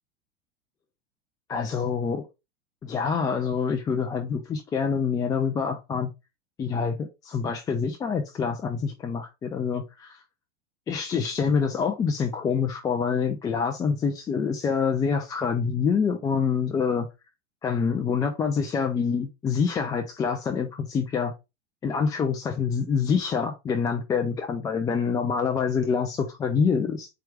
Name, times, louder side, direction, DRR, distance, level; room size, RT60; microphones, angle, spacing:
voice 1, 1.5-2.2 2.8-6.1 6.6-10.2 10.9-17.1 17.6-21.3 21.8-27.1, left 6 dB, 10° left, 0.3 m, -26 dB
4.4 x 2.5 x 4.5 m
figure-of-eight pair, 90°, 36 cm